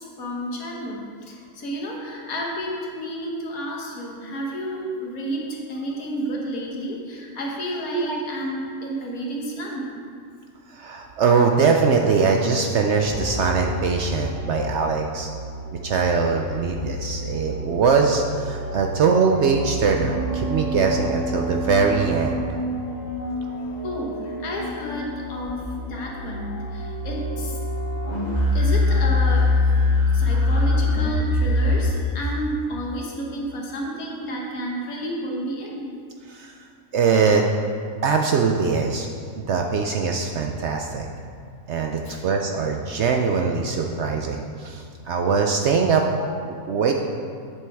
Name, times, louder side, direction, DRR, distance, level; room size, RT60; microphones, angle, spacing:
voice 1, 0.0-9.9 23.8-27.6 28.5-29.5 30.1-35.9 42.0-42.2 46.2-46.3, equal, 75° left, -2 dB, 1.7 m, -31 dB
voice 2, 10.7-15.3 15.8-22.6 36.3-36.5 36.9-37.4 38.0-39.1 39.4-41.1 41.7-46.0 46.7-46.9, right 5 dB, 65° right, 2 dB, 0.7 m, -22 dB
sound 1, 13.0-32.4, left 2 dB, 30° left, 1.3 m, -25 dB
8.4 x 7.6 x 3.5 m, 2.2 s
omnidirectional pair, 1.5 m